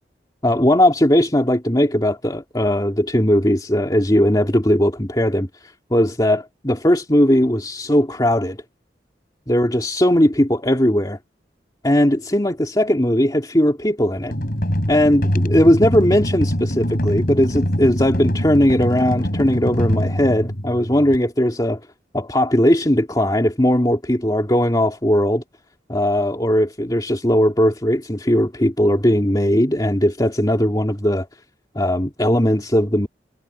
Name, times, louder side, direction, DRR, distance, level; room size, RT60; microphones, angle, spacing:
voice 1, 0.4-5.5 5.9-8.6 9.5-11.2 11.8-14.3 14.9-21.8 22.1-25.4 25.9-31.3 31.7-33.1, equal, 20° left, 2.6 m, -18 dB
sound 1, 14.3-21.2, equal, 55° left, 4.2 m, -23 dB
head